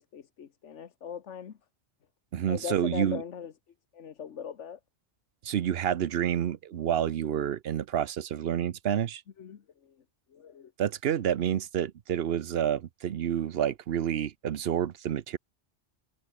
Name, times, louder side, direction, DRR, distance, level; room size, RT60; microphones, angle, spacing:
voice 1, 0.0-1.6 2.5-3.5 3.9-4.8 9.4-9.9 10.3-10.7, left 7 dB, 90° left, 1.4 m, -40 dB
voice 2, 2.3-3.2 5.4-9.2 10.8-15.4, right 9 dB, 60° right, 0.9 m, -29 dB
omnidirectional pair, 1.2 m